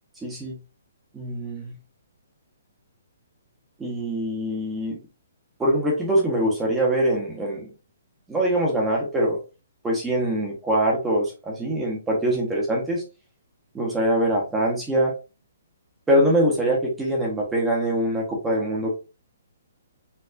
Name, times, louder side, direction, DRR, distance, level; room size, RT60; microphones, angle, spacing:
voice 1, 0.2-0.6 1.1-1.7 3.8-5.0 5.6-7.7 8.3-9.4 9.8-13.0 13.7-15.1 16.1-19.0, right 1 dB, 5° right, -2 dB, 0.7 m, -23 dB
4.4 x 2.4 x 2.4 m, 0.31 s
hypercardioid pair, 175°, 0 cm